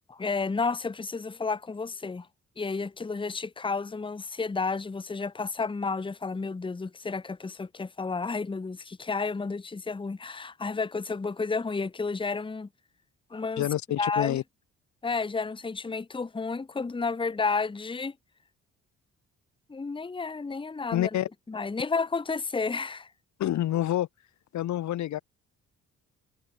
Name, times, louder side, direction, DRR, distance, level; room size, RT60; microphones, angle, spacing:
voice 1, 0.1-2.3 2.6-12.7 13.3-13.7 14.0-14.4 15.0-18.1 19.7-21.1 21.5-23.1, left 4 dB, 15° left, 1.0 m, -31 dB
voice 2, 13.6-14.4 20.9-21.3 23.4-24.1 24.5-25.2, left 13 dB, 70° left, 1.2 m, -27 dB
cardioid pair, 90°, 30 cm